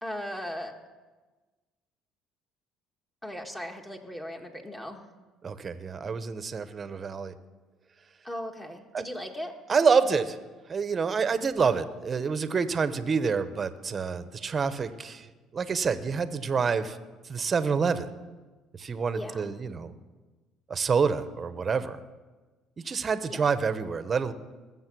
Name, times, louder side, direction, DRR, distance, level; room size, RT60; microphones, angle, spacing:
voice 1, 0.0-0.7 3.2-5.0 8.2-9.5 19.1-19.5 23.3-23.5, equal, 15° left, 2 dB, 1.7 m, -37 dB
voice 2, 5.4-7.4 8.9-9.1 9.7-10.4 10.7-15.3 15.5-17.0 17.3-18.1 18.7-19.9 20.7-22.0 22.8-24.3, right 5 dB, 35° right, 12 dB, 0.9 m, -27 dB
20.0 x 7.5 x 6.2 m, 1.3 s
supercardioid pair, 90°, 0 cm